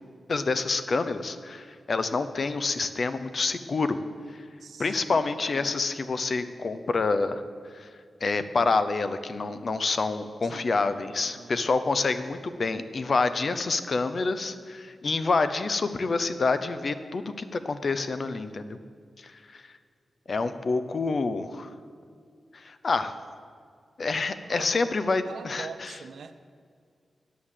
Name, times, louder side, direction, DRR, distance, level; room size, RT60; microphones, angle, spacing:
voice 1, 0.3-4.0 4.8-7.4 7.7-7.9 8.2-18.8 19.2-19.6 20.3-21.7 22.5-23.1 24.0-25.9, left 3 dB, 50° left, 11 dB, 0.5 m, -27 dB
voice 2, 4.6-5.8 10.4-10.8 11.2-11.7 24.5-26.3, right 5 dB, 85° right, 10 dB, 0.6 m, -44 dB
9.2 x 6.5 x 7.3 m, 2.1 s
wide cardioid pair, 115°, 0 cm